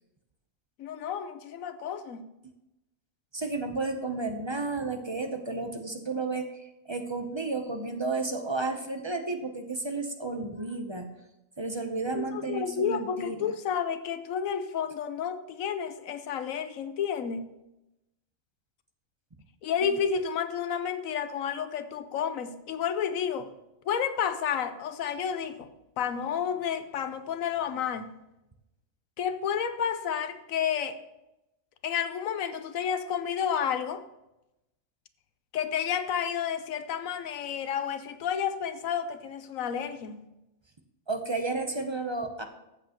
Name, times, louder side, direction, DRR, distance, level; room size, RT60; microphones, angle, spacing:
voice 1, 0.8-2.3 12.1-17.5 19.6-23.5 23.8-25.7 26.0-28.1 29.2-31.0 31.8-34.0 35.5-40.3, left 8 dB, 85° left, 10 dB, 1.1 m, -31 dB
voice 2, 3.3-6.5 6.9-11.1 11.6-13.5 19.8-19.9 41.1-42.4, right 3 dB, 30° right, 5 dB, 0.6 m, -32 dB
14.5 x 7.8 x 2.9 m, 0.93 s
omnidirectional pair, 1.4 m